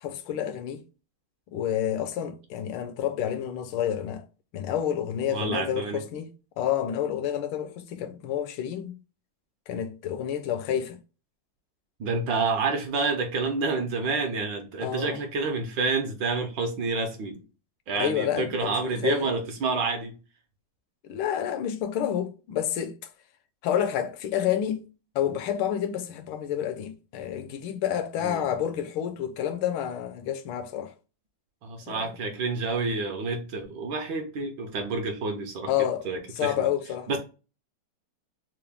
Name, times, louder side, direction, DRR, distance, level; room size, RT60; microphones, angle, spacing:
voice 1, 0.0-0.8 1.5-4.3 4.5-6.3 6.6-8.9 9.7-11.0 14.8-15.2 18.0-19.3 21.0-23.0 23.6-24.9 25.1-30.9 31.8-32.1 35.7-36.1 36.3-37.2, left 10 dB, 75° left, 1.3 m, -29 dB
voice 2, 5.3-6.0 12.0-17.4 17.9-20.2 28.2-28.4 31.6-35.7 36.0-36.7 37.1-37.2, right 4 dB, 70° right, 1.2 m, -29 dB
4.5 x 2.1 x 3.4 m
omnidirectional pair, 2.4 m